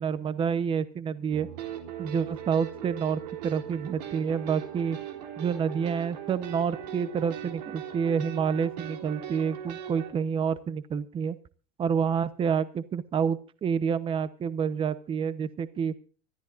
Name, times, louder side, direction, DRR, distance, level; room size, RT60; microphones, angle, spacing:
voice 1, 0.0-1.5 2.0-5.0 5.4-11.4 11.8-15.9, right 7 dB, 25° right, 15 dB, 1.0 m, -28 dB
sound 1, 1.3-10.1, right 10 dB, 90° right, 3.3 m, -39 dB
25.5 x 13.0 x 2.6 m, 0.40 s
supercardioid pair, 135°, 21 cm